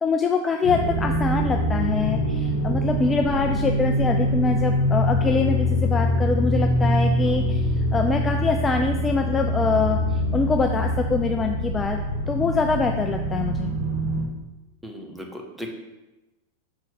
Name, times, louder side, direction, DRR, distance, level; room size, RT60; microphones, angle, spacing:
voice 1, 0.0-12.0 12.3-13.8, left 4 dB, 15° left, 4 dB, 0.3 m, -24 dB
sound 1, 0.6-14.2, equal, 50° right, 1.9 m, -24 dB
voice 2, 14.8-15.7, equal, 5° right, 2 dB, 0.9 m, -37 dB
5.9 x 3.9 x 4.2 m, 1.0 s
figure-of-eight pair, 90°, 0 cm